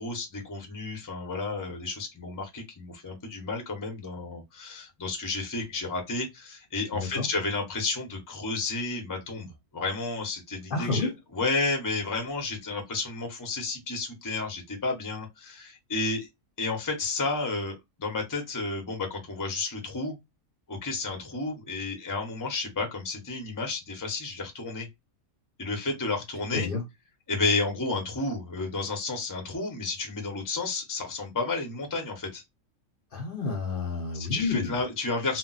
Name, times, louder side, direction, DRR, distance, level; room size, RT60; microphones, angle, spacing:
voice 1, 0.0-16.3 16.6-20.2 20.7-24.9 25.6-26.7 27.3-32.4 34.1-35.4, left 3 dB, 20° left, 0.6 m, -31 dB
voice 2, 6.9-7.3 10.7-11.1 26.5-26.8 33.1-34.8, left 4 dB, 50° left, 0.8 m, -30 dB
2.2 x 2.1 x 3.8 m
omnidirectional pair, 1.4 m